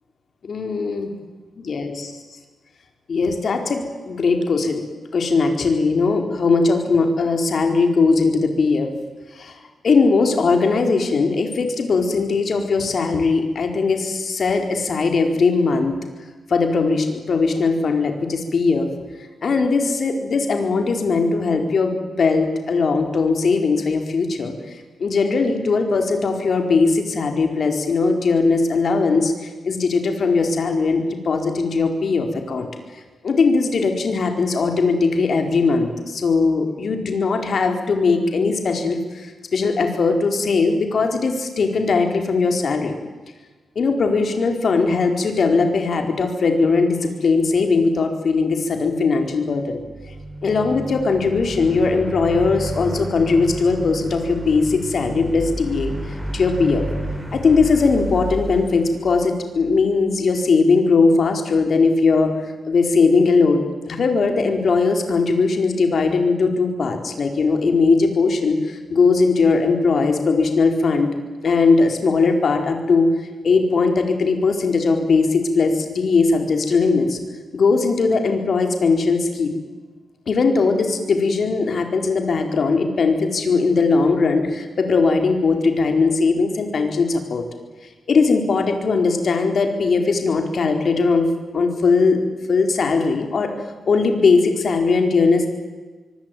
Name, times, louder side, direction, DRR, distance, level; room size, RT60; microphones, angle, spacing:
voice 1, 0.4-1.1 1.6-2.1 3.1-4.8 5.1-8.9 9.3-9.5 9.8-15.9 16.5-18.9 19.4-32.7 33.2-42.9 43.7-49.8 50.4-55.9 56.3-56.9 57.3-71.1 71.4-73.1 73.4-77.2 77.5-79.6 80.3-87.4 88.1-91.3 91.5-92.2 92.5-93.5 93.9-95.5, left 4 dB, 55° left, 5 dB, 4.5 m, -19 dB
sound 1, 49.7-59.9, right 1 dB, 10° right, 5.1 m, -31 dB
25.0 x 24.0 x 9.4 m, 1.3 s
wide cardioid pair, 120°, 0 cm